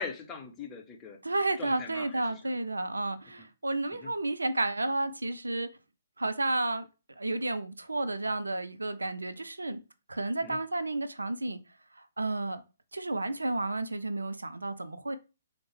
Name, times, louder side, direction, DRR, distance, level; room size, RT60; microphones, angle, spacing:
voice 1, 0.0-1.2 1.6-2.4 3.2-3.5 4.0-4.1 10.4-10.6, left 5 dB, 15° left, 0.8 m, -41 dB
voice 2, 1.2-5.7 6.2-6.9 7.2-9.8 10.1-11.6 12.2-12.6 12.9-15.2, right 2 dB, 75° right, 0.4 m, -31 dB
4.4 x 2.1 x 3.2 m
figure-of-eight pair, 125°, 0 cm